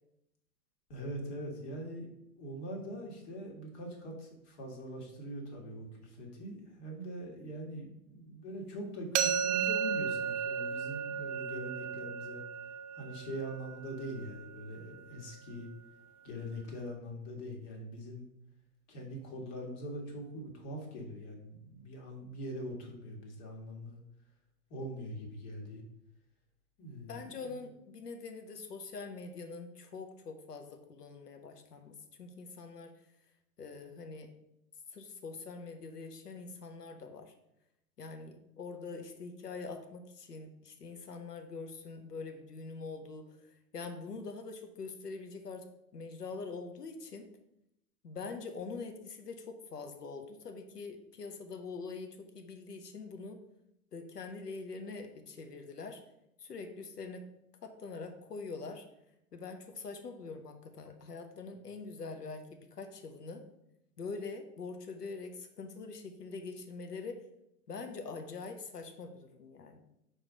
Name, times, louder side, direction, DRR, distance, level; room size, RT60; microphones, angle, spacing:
voice 1, 0.9-2.1 2.4-12.4 12.9-15.7 16.2-18.3 18.9-24.0 24.7-25.8 26.8-27.6, equal, 45° left, 1 dB, 1.9 m, -42 dB
sound 1, 9.1-15.0, right 7 dB, 50° right, 0.6 m, -35 dB
voice 2, 27.1-33.0 33.6-34.3 34.9-37.3 38.0-45.7 45.9-47.3 48.0-53.4 53.9-56.0 56.4-57.2 57.6-58.8 59.3-63.4 64.0-67.2 67.7-69.8, left 4 dB, 85° left, 6 dB, 0.9 m, -44 dB
4.8 x 4.4 x 5.0 m, 0.81 s
figure-of-eight pair, 100°, 46 cm